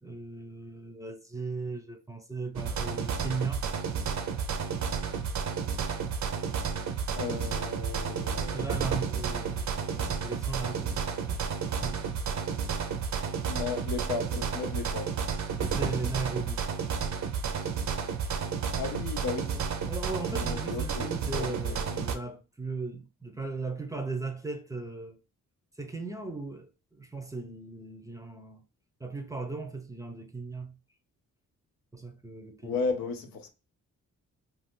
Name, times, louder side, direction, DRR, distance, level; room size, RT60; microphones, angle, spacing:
voice 1, 0.0-3.6 8.5-12.0 15.6-16.7 19.5-25.2 25.8-28.6 29.0-30.8 31.9-32.8, right 3 dB, 10° right, 0.5 m, -37 dB
sound 1, 2.6-22.2, right 6 dB, 55° right, 0.6 m, -31 dB
voice 2, 7.2-8.7 13.5-15.1 18.8-19.5 20.3-21.8 32.6-33.5, left 4 dB, 80° left, 0.7 m, -35 dB
2.6 x 2.4 x 3.6 m
cardioid pair, 75°, 34 cm